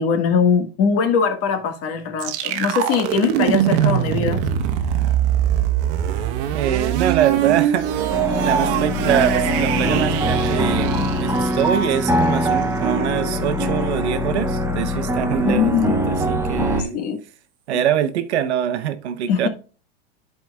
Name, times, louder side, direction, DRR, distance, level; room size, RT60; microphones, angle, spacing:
voice 1, 0.0-4.4 15.4-15.9 16.9-17.2 17.7-17.8 19.3-19.5, left 6 dB, 45° left, 1.7 m, -21 dB
sound 1, 2.2-12.0, right 11 dB, 55° right, 1.0 m, -22 dB
voice 2, 6.5-7.9 8.4-17.0 17.7-19.5, right 9 dB, 85° right, 1.0 m, -24 dB
sound 2, 8.1-16.8, equal, 10° right, 0.7 m, -22 dB
13.5 x 4.6 x 2.3 m
supercardioid pair, 125°, 33 cm